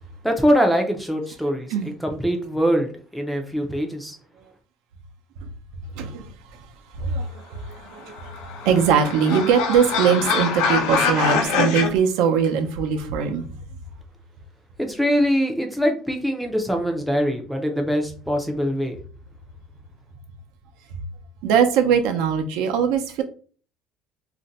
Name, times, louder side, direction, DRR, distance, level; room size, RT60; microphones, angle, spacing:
voice 1, 0.2-4.2 14.8-19.0, equal, ahead, 0.4 m, -23 dB
voice 2, 5.9-6.6 7.0-13.5 20.9-21.0 21.4-23.2, right 7 dB, 80° right, 0.6 m, -21 dB
sound 1, 8.0-11.9, left 5 dB, 80° left, 0.6 m, -24 dB
2.5 x 2.1 x 3.9 m
cardioid pair, 170°, 0 cm